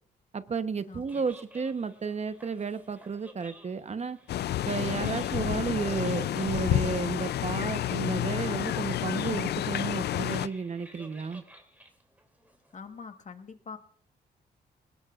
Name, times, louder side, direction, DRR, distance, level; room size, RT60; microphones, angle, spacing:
voice 1, 0.3-4.2 4.7-11.4, right 5 dB, 35° right, 11 dB, 1.0 m, -32 dB
sound 1, 0.8-13.0, right 1 dB, 10° right, 2.9 m, -54 dB
voice 2, 0.9-1.3 12.7-13.8, left 5 dB, 40° left, 7 dB, 1.4 m, -44 dB
sound 2, 4.3-10.5, left 12 dB, 65° left, 0.4 m, -30 dB
20.5 x 19.0 x 2.5 m, 0.62 s
cardioid pair, 80°, 18 cm